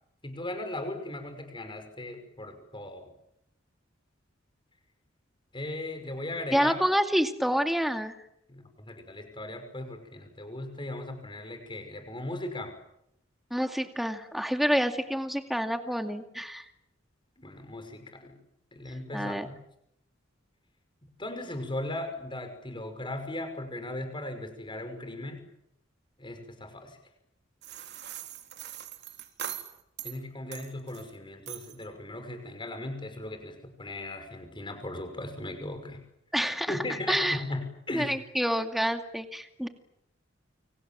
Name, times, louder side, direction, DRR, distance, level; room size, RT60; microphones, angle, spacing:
voice 1, 0.2-3.1 5.5-6.8 8.5-12.8 17.4-18.3 18.7-19.6 21.2-25.5 26.2-27.0 30.0-36.0 36.7-38.2, left 1 dB, 25° left, 7 dB, 5.7 m, -38 dB
voice 2, 6.5-8.1 13.5-16.6 19.1-19.5 36.3-36.8 37.1-37.4 37.9-39.7, equal, ahead, 6 dB, 2.3 m, -28 dB
sound 1, 27.6-30.2 30.5-31.1 31.5-31.8, right 10 dB, 60° right, 3.7 m, -41 dB
29.5 x 26.0 x 7.6 m, 0.79 s
head